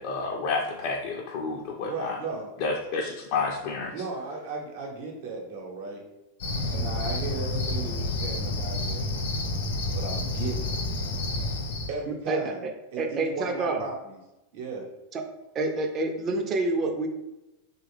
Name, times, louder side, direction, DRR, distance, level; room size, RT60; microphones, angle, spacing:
voice 1, 0.0-2.2 2.6-3.9, left 4 dB, 55° left, 0 dB, 0.4 m, -30 dB
voice 2, 1.8-2.5 3.9-6.0 6.7-9.1 9.9-10.8 11.9-12.6 12.9-14.2 14.5-14.9, right 4 dB, 65° right, 0 dB, 0.9 m, -36 dB
Cricket, 6.4-11.9, left 2 dB, 75° left, 0.8 m, -29 dB
voice 3, 12.3-12.7 13.0-13.8 15.1-15.2 15.5-17.1, right 2 dB, 35° right, 4 dB, 0.5 m, -27 dB
3.2 x 2.3 x 3.3 m, 0.98 s
hypercardioid pair, 100°, 0 cm